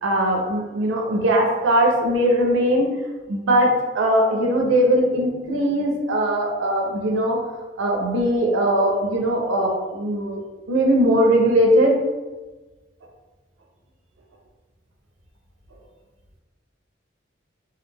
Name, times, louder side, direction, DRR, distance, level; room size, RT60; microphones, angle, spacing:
voice 1, 0.0-2.9 3.3-7.4 7.8-10.4 10.7-12.0, right 1 dB, 75° right, 0 dB, 0.4 m, -20 dB
2.3 x 2.1 x 3.2 m, 1.2 s
head